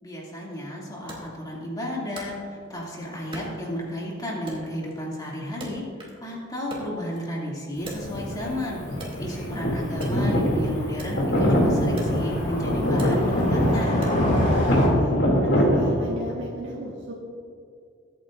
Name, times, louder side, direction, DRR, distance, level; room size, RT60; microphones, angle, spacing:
voice 1, 0.0-5.8 6.2-14.1, equal, 20° left, -4 dB, 2.5 m, -32 dB
Wood, 1.1-2.9 3.3-4.1 4.5-6.3 6.6-8.5 8.9-14.5, equal, 30° right, 2.5 m, -42 dB
Cricket / Motor vehicle (road), 7.8-14.9, left 1 dB, 45° left, 3.3 m, -30 dB
sound 1, 7.9-8.5 8.8-15.9, equal, 75° left, 2.7 m, -23 dB
voice 2, 9.5-9.9 14.6-15.1 15.5-17.1, equal, 70° right, -4 dB, 1.6 m, -37 dB
22.0 x 9.0 x 2.6 m, 2.4 s
head